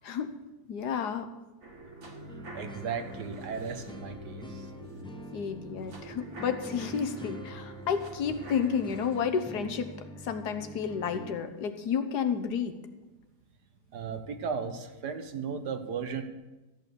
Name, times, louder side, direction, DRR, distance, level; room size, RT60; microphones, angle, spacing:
voice 1, 0.7-1.3 5.3-9.9 10.2-12.7, left 7 dB, 80° left, 8 dB, 1.6 m, -31 dB
sound 1, 1.6-11.6 12.0-12.1, right 3 dB, 55° right, 2.4 m, -48 dB
sound 2, 1.9-7.3, left 1 dB, 10° right, 2.0 m, -51 dB
sound 3, 2.3-11.4, right 1 dB, 5° left, 0.4 m, -46 dB
voice 2, 2.5-4.7 13.9-16.2, right 6 dB, 80° right, 7 dB, 1.7 m, -35 dB
14.0 x 8.5 x 6.9 m, 1.1 s
omnidirectional pair, 1.7 m